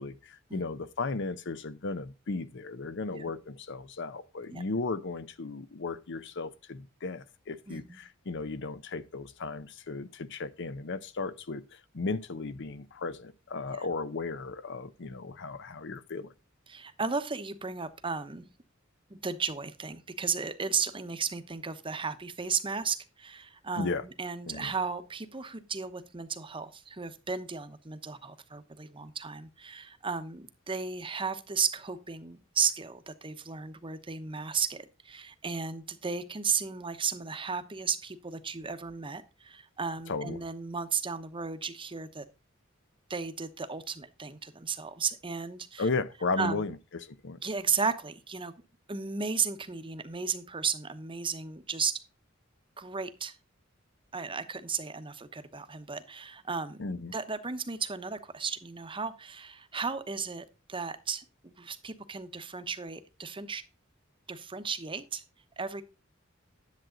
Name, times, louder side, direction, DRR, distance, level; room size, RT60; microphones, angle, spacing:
voice 1, 0.0-16.3 23.8-24.0 24.5-24.7 40.1-40.4 45.8-47.4 56.8-57.1, left 3 dB, 60° left, 0.7 m, -35 dB
voice 2, 7.7-8.0 13.7-13.8 16.7-18.5 19.1-42.2 43.1-45.9 46.4-46.7 47.4-48.5 48.9-52.0 52.8-53.4 54.1-56.8 57.1-63.6 64.3-65.2 65.6-65.8, right 5 dB, 25° right, 0.9 m, -34 dB
10.5 x 7.6 x 3.8 m
head